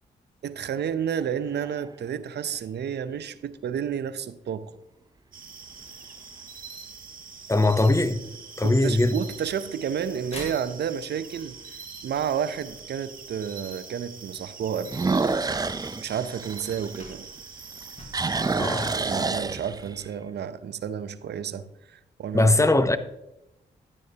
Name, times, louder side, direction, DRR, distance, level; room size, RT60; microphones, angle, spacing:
voice 1, 0.4-4.7 8.6-11.6 12.0-15.0 16.0-17.3 18.6-22.5, right 8 dB, 65° right, 0.6 m, -31 dB
sound 1, 1.2-1.9 2.6-2.7 7.9-8.3 8.8-8.9 9.5-9.6 9.8-9.9 11.4-11.5 14.9-17.4 17.7-20.1, right 3 dB, 20° right, 0.5 m, -28 dB
sound 2, 5.3-19.2, right 5 dB, 50° right, 1.3 m, -44 dB
voice 2, 7.5-8.2 8.6-9.2 18.6-18.9 22.3-23.0, left 2 dB, 15° left, 0.8 m, -20 dB
sound 3, 9.4-13.0 14.3-14.4 15.0-15.1 15.3-18.4, left 1 dB, 35° left, 3.2 m, -47 dB
10.5 x 9.2 x 2.8 m
supercardioid pair, 45°, 19 cm